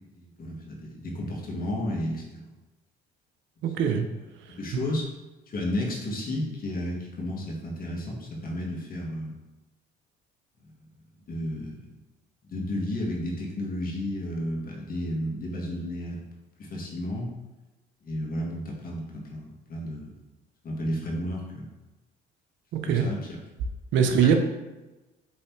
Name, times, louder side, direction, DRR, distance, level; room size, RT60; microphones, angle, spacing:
voice 1, 0.1-2.5 4.5-5.1 5.5-9.4 11.3-11.9 12.4-16.2 16.6-17.3 18.0-20.1 20.6-21.7 22.8-23.2 24.2-24.3, left 1 dB, 45° left, -1 dB, 1.4 m, -32 dB
voice 2, 3.6-4.0 4.7-4.8 22.7-23.1 23.9-24.3, right 8 dB, 65° right, 6 dB, 0.6 m, -22 dB
5.5 x 3.1 x 3.1 m, 1.1 s
supercardioid pair, 75°, 21 cm